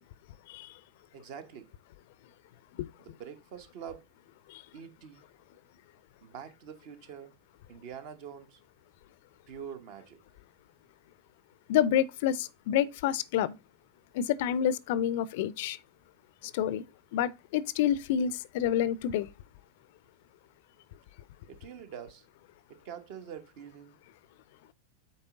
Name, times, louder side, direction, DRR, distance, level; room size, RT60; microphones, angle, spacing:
voice 1, 0.5-0.8 2.8-2.9 4.5-4.6 11.7-13.6 14.1-15.8 16.4-16.8 17.1-19.3, left 10 dB, 50° left, 0.5 m, -28 dB
voice 2, 1.1-1.7 3.0-4.1 4.7-5.3 6.2-7.3 7.7-8.6 9.5-10.2 21.5-22.3 22.7-23.9, right 8 dB, 45° right, 1.2 m, -45 dB
8.7 x 4.3 x 3.7 m
figure-of-eight pair, 90°, 0 cm